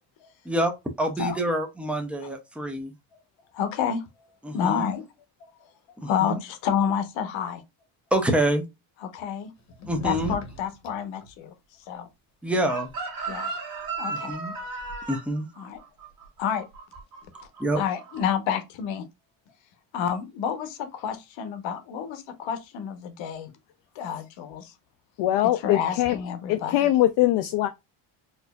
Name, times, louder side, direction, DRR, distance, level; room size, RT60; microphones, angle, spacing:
voice 1, 1.0-2.9 4.4-4.9 6.0-6.4 8.1-8.6 9.9-10.4 12.4-12.9 14.1-14.5 15.1-15.5 17.6-17.8, right 1 dB, 5° right, 0.4 m, -26 dB
voice 2, 3.5-4.0 4.5-5.0 5.4-5.5 6.0-7.6 9.0-9.5 10.0-11.5 11.9-12.1 13.3-13.6 14.0-14.4 15.6-15.8 16.4-16.6 17.8-19.0 19.9-23.5 23.9-24.7 25.6-26.9, left 8 dB, 80° left, 1.0 m, -29 dB
sound 1, 9.6-11.3 12.8-12.9, left 2 dB, 35° left, 0.9 m, -38 dB
Chicken rooster, 12.7-17.6 17.9-18.3, right 4 dB, 45° right, 1.4 m, -35 dB
voice 3, 25.2-26.2 26.5-27.7, left 14 dB, 60° left, 0.5 m, -22 dB
4.3 x 2.5 x 2.2 m
cardioid pair, 170°, 45 cm